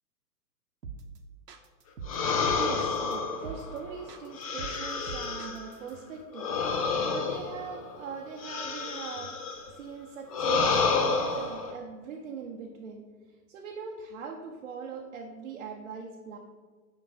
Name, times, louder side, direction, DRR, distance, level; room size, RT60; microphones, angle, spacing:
sound 1, 0.8-1.2 1.5-3.1 3.4-3.8 4.1-5.9, right 5 dB, 75° right, 1.0 m, -42 dB
sound 2, 2.1-5.7 6.3-9.7 10.3-11.7, left 5 dB, 25° left, 0.5 m, -30 dB
voice 1, 2.6-9.4 9.7-13.1 13.5-16.4, right 6 dB, 50° right, 0 dB, 0.9 m, -40 dB
6.1 x 5.4 x 5.5 m, 1.5 s
figure-of-eight pair, 120°, 49 cm